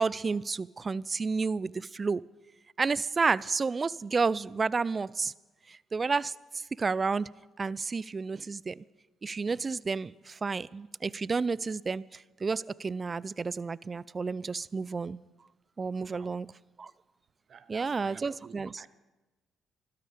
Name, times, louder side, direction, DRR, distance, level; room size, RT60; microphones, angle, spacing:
voice 1, 0.0-2.2 2.8-5.3 5.9-6.3 6.8-7.3 7.6-8.7 9.2-12.0 12.4-15.2 15.8-16.5 16.8-16.9 17.7-18.8, right 4 dB, 35° right, 0.4 m, -30 dB
voice 2, 17.5-18.9, right 7 dB, 55° right, 0.9 m, -51 dB
17.0 x 12.5 x 5.1 m
hypercardioid pair, 50°, 0 cm